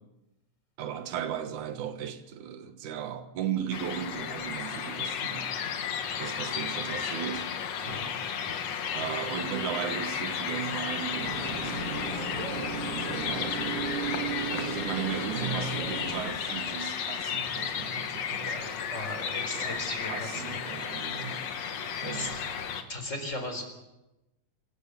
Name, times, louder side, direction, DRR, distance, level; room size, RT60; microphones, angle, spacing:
voice 1, 0.8-5.5 6.2-8.2 8.9-12.2 12.9-13.9 14.5-18.7 19.5-21.4 22.0-22.5, right 9 dB, 70° right, 2.8 m, -36 dB
sound 1, 3.7-22.8, left 7 dB, 60° left, 2.4 m, -33 dB
voice 2, 8.6-8.9 18.5-20.4 21.5-22.3 22.9-23.6, left 1 dB, 20° left, 4.1 m, -38 dB
sound 2, 11.2-16.3, right 4 dB, 45° right, 3.0 m, -35 dB
25.5 x 13.5 x 8.3 m
omnidirectional pair, 3.7 m